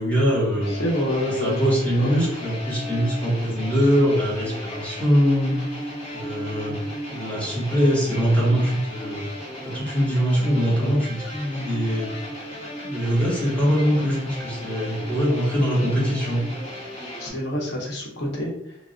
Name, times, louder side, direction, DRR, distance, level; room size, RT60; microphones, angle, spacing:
voice 1, 0.0-0.8 1.4-5.5 6.1-6.7 7.1-9.2 9.6-12.1 12.8-16.4, equal, 5° left, -6 dB, 0.9 m, -22 dB
sound 1, 0.6-17.3, equal, 35° left, 0.8 m, -36 dB
voice 2, 0.7-1.7 2.0-2.3 17.2-18.8, left 1 dB, 65° left, -2 dB, 0.9 m, -27 dB
2.2 x 2.0 x 3.7 m, 0.76 s
head